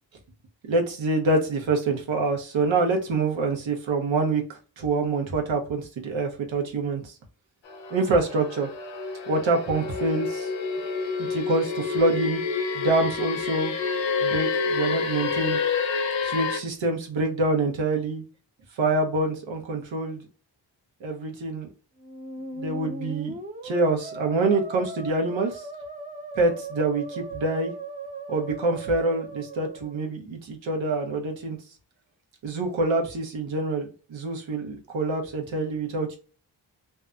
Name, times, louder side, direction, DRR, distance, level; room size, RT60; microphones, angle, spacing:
voice 1, 0.6-7.1 7.9-8.7 9.3-10.5 11.2-12.4 12.7-13.7 14.2-15.6 16.2-18.2 18.8-20.2 21.0-21.7 22.5-23.3 23.6-25.7 26.4-27.7 28.3-31.6 32.4-36.2, right 2 dB, 90° right, 2 dB, 0.9 m, -26 dB
sound 1, 7.6-16.6, left 5 dB, 80° left, 0.7 m, -28 dB
Musical instrument, 22.0-30.0, right 2 dB, 20° right, 0.4 m, -38 dB
2.7 x 2.2 x 2.4 m, 0.36 s
wide cardioid pair, 110°, 45 cm